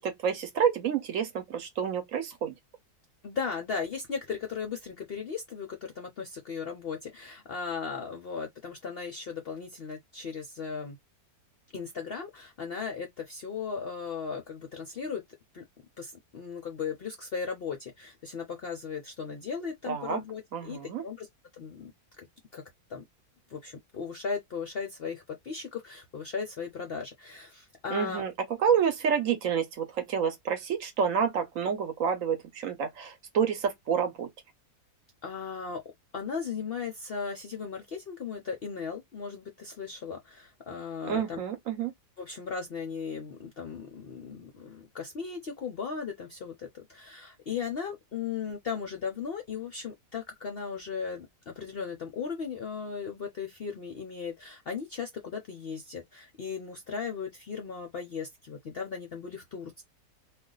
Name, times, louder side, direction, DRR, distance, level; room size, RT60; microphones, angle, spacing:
voice 1, 0.0-2.5 19.9-20.2 20.5-21.0 27.9-28.3 28.6-34.3 41.1-41.9, right 7 dB, 65° right, 1.0 m, -28 dB
voice 2, 3.2-11.0 11.7-15.2 15.5-15.6 16.0-21.3 21.5-21.9 22.2-22.3 22.5-22.6 22.9-23.0 23.5-28.2 35.2-35.8 36.1-41.4 42.2-59.8, left 6 dB, 60° left, 0.6 m, -37 dB
2.5 x 2.3 x 3.7 m
omnidirectional pair, 1.6 m